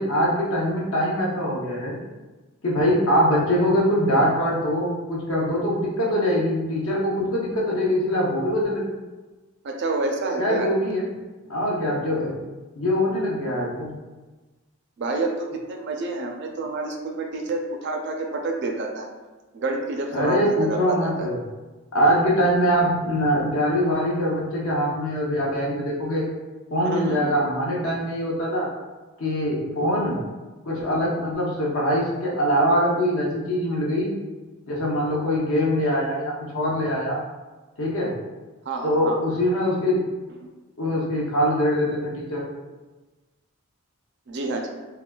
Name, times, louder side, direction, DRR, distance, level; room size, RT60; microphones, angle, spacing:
voice 1, 0.0-2.0 2.6-8.9 10.4-11.1 11.5-12.3 12.8-13.9 20.1-21.4 21.9-26.3 26.7-28.7 29.2-30.2 30.7-34.1 34.7-37.2 37.8-38.1 38.8-40.0 40.8-42.4, equal, 70° left, -4 dB, 0.8 m, -23 dB
voice 2, 9.6-10.7 15.0-19.1 19.5-21.3 26.9-27.3 38.7-39.2 40.4-40.5 44.3-44.7, right 2 dB, 50° right, 2 dB, 0.4 m, -28 dB
3.8 x 2.2 x 2.2 m, 1.2 s
head